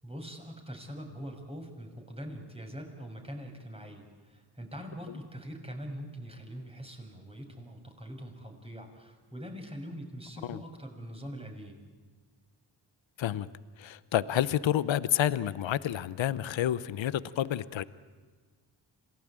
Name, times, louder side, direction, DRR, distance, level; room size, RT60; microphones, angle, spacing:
voice 1, 0.0-11.8, equal, 10° right, 3 dB, 6.5 m, -43 dB
voice 2, 13.8-17.8, left 11 dB, 75° left, 17 dB, 0.9 m, -29 dB
27.0 x 18.0 x 8.9 m, 1.4 s
cardioid pair, 55°, 46 cm